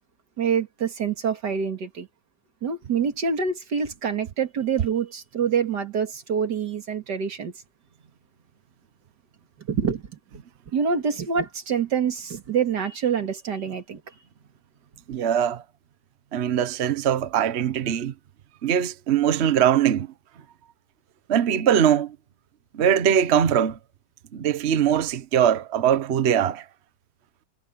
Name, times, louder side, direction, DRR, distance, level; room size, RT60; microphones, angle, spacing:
voice 1, 0.4-2.1 2.6-7.5 9.7-10.0 10.7-14.0, right 6 dB, 90° right, 2.6 m, -26 dB
voice 2, 15.1-15.6 16.3-18.1 18.6-20.1 21.3-22.2 22.7-23.8 24.3-26.6, right 9 dB, 45° right, 1.1 m, -21 dB
omnidirectional pair, 1.8 m